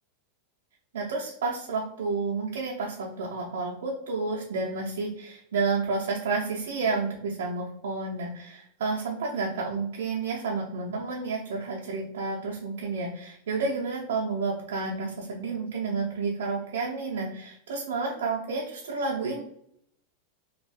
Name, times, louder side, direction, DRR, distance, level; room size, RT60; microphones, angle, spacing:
voice 1, 0.9-19.4, right 4 dB, 90° right, -3 dB, 0.5 m, -30 dB
2.6 x 2.3 x 3.3 m, 0.71 s
supercardioid pair, 150°, 0 cm